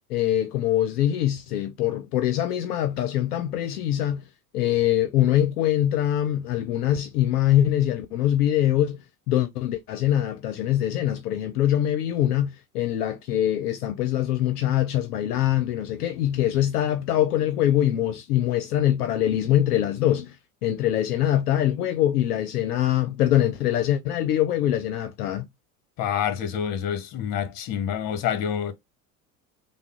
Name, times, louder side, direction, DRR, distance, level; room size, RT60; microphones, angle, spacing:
voice 1, 0.1-4.2 4.5-9.0 9.3-20.4 20.6-25.5, left 12 dB, 75° left, 0.6 m, -23 dB
voice 2, 26.0-28.7, left 9 dB, 50° left, 1.0 m, -27 dB
3.5 x 2.1 x 3.6 m
hypercardioid pair, 75°, 46 cm